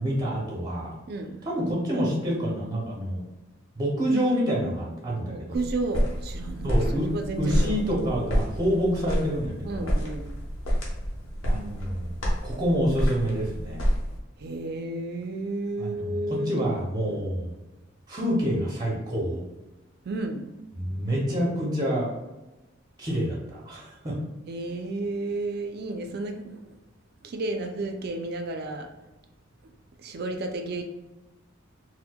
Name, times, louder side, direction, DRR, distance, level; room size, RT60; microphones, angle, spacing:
voice 1, 0.0-0.9 1.4-3.3 3.8-5.6 6.6-7.1 7.4-10.0 11.4-13.8 15.8-17.5 18.1-19.4 20.7-22.1 23.0-24.2, equal, 20° right, -3 dB, 0.6 m, -27 dB
voice 2, 1.1-1.4 5.3-7.7 9.6-10.4 14.4-16.5 17.1-17.3 20.0-20.5 24.5-26.6 27.2-28.9 30.0-30.8, right 2 dB, 50° right, 5 dB, 0.4 m, -32 dB
sound 1, 5.5-14.2, equal, 90° left, 0.8 m, -29 dB
4.3 x 2.1 x 2.2 m, 1.1 s
head